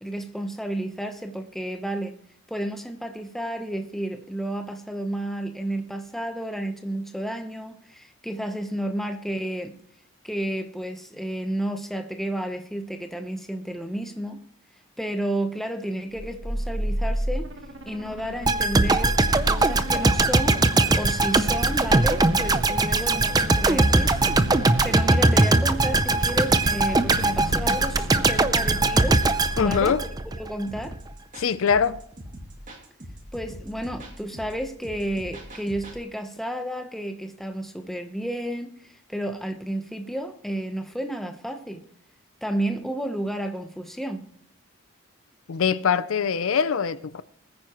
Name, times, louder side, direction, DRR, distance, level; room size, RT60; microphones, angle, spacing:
voice 1, 0.0-2.1 2.5-9.8 10.2-14.4 15.0-17.5 17.9-19.2 19.5-20.6 20.9-29.2 29.6-30.0 30.4-31.0 33.3-41.8 42.4-44.2, right 1 dB, ahead, 0.9 m, -31 dB
sound 1, 16.1-30.7, right 1 dB, 60° right, 1.3 m, -33 dB
sound 2, 18.5-30.5 30.8-30.9, right 2 dB, 20° right, 0.5 m, -21 dB
voice 2, 29.6-30.0 31.4-32.0 45.5-47.2, left 6 dB, 70° left, 0.5 m, -23 dB
sound 3, 30.7-36.0, equal, 35° right, 2.3 m, -42 dB
21.0 x 9.6 x 3.0 m
head